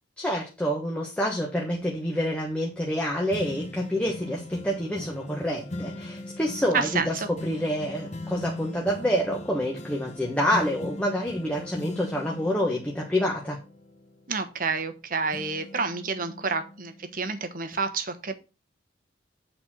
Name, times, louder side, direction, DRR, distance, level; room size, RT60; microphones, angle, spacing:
voice 1, 0.2-13.6, equal, 5° left, -2 dB, 1.2 m, -27 dB
sound 1, 3.3-15.0 15.3-17.2 17.7-17.8, left 1 dB, 40° left, 1.1 m, -40 dB
voice 2, 6.7-7.3 14.3-18.3, right 4 dB, 50° right, 9 dB, 1.1 m, -29 dB
8.6 x 4.3 x 6.1 m, 0.32 s
head